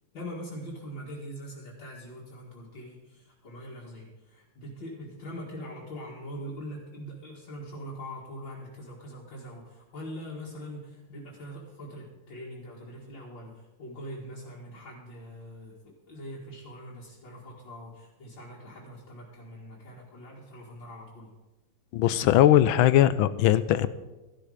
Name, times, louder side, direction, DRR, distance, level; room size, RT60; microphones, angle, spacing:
voice 1, 0.1-21.3, equal, 65° left, -6 dB, 2.9 m, -42 dB
voice 2, 21.9-23.9, left 12 dB, 80° left, 15 dB, 1.4 m, -20 dB
14.5 x 11.5 x 5.0 m, 1.1 s
omnidirectional pair, 2.2 m